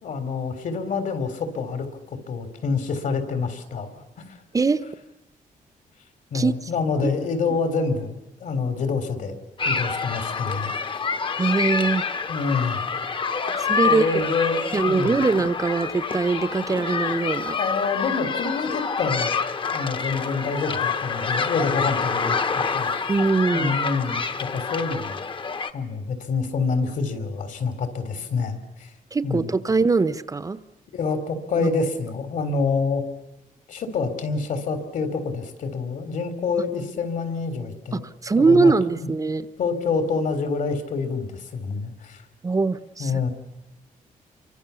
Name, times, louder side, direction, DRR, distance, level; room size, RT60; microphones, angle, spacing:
voice 1, 0.0-4.4 6.3-9.4 9.7-10.7 12.3-12.8 13.8-15.2 17.6-19.3 19.7-22.4 22.7-22.9 23.5-25.2 25.7-28.9 29.2-29.5 30.9-33.0 33.7-38.0 38.3-39.1 39.6-42.2 43.0-43.3, left 4 dB, 65° left, 9 dB, 3.6 m, -27 dB
sound 1, 9.6-25.7, left 5 dB, 35° left, 1.3 m, -27 dB
voice 2, 11.4-12.0 13.6-14.1 14.7-17.6 23.1-23.7 29.1-30.6 31.6-31.7 37.9-39.5 42.4-43.3, right 4 dB, 25° right, 14 dB, 0.9 m, -22 dB
28.5 x 24.0 x 7.1 m, 0.94 s
cardioid pair, 130°, 14 cm